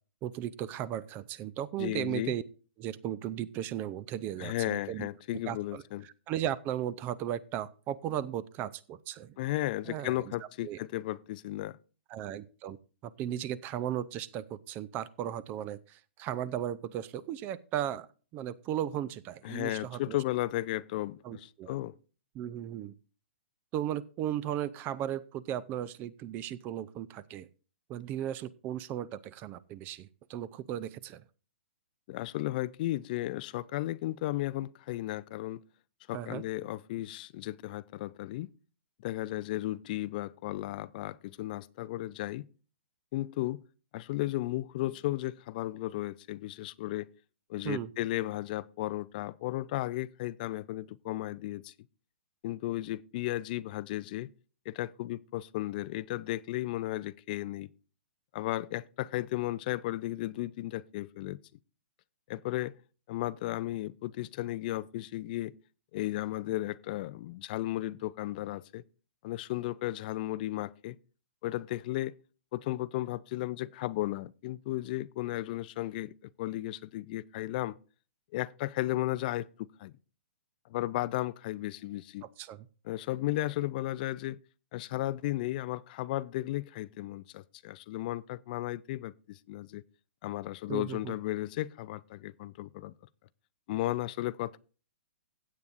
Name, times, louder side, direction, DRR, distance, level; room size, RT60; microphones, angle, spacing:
voice 1, 0.2-2.4 2.8-5.1 5.5-5.8 6.3-9.4 9.9-10.3 10.6-10.8 12.1-12.8 13.0-18.1 18.3-20.2 21.2-21.7 22.3-22.9 23.7-27.5 27.9-31.2 36.1-36.4 47.6-47.9 82.2-82.7 90.7-91.1, right 11 dB, 25° right, 0.5 m, -36 dB
voice 2, 1.8-2.3 4.4-6.1 9.4-11.8 19.4-22.0 32.1-35.6 36.1-38.5 39.0-42.5 43.1-43.6 43.9-47.1 47.5-51.7 52.4-54.3 54.7-57.7 58.3-61.4 62.3-62.7 63.1-65.6 65.9-68.8 69.2-71.0 71.4-72.1 72.5-77.8 78.3-80.0 80.7-82.3 82.8-84.4 84.7-89.8 90.2-92.9 93.7-94.6, left 16 dB, 40° left, 0.4 m, -34 dB
16.0 x 8.3 x 2.5 m
hypercardioid pair, 135°, 7 cm